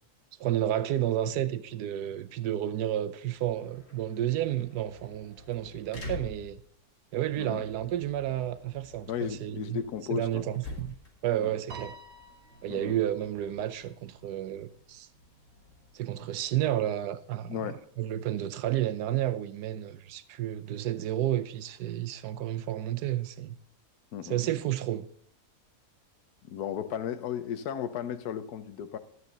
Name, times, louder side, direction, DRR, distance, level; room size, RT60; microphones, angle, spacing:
voice 1, 0.4-6.6 7.1-9.8 10.1-11.0 11.2-12.0 12.6-15.1 15.9-23.6 24.2-25.1, right 12 dB, 80° right, 1.2 m, -31 dB
sound 1, 3.2-18.6, left 2 dB, 50° left, 2.9 m, -49 dB
voice 2, 9.1-10.4 11.4-11.5 12.7-13.0 17.5-17.8 24.1-24.6 26.5-29.0, left 9 dB, 75° left, 1.3 m, -35 dB
Piano, 11.7-14.2, right 2 dB, 60° right, 2.5 m, -49 dB
12.5 x 9.5 x 3.9 m
omnidirectional pair, 1.7 m